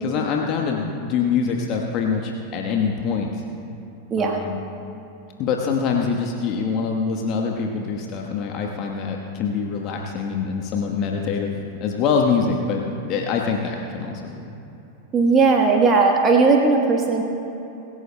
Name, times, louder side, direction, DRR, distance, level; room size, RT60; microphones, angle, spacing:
voice 1, 0.0-3.4 4.2-4.6 5.4-11.5 11.8-14.5, left 5 dB, 35° left, 1 dB, 1.2 m, -24 dB
voice 2, 15.1-17.2, right 4 dB, 25° right, 1 dB, 1.2 m, -17 dB
25.5 x 16.5 x 2.2 m, 3.0 s
figure-of-eight pair, 90°, 0 cm